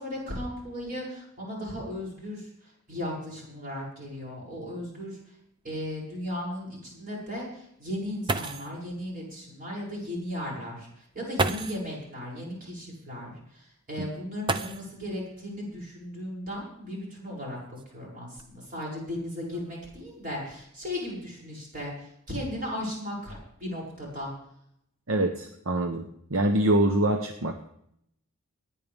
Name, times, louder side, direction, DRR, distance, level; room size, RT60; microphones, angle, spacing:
voice 1, 0.0-5.2 5.6-24.3, left 1 dB, 40° right, -4 dB, 7.0 m, -36 dB
sound 1, 4.4-4.5 4.9-5.0 5.6-5.7 7.9-8.0 8.3-8.8 10.1-10.2 11.3-11.9 14.4-15.2 16.5-16.6 17.4-18.8 19.5-19.9 20.2-20.6, right 2 dB, 20° right, 0.6 m, -32 dB
voice 2, 25.1-27.7, right 1 dB, 65° right, 5 dB, 1.0 m, -25 dB
24.0 x 10.5 x 3.6 m, 0.75 s
head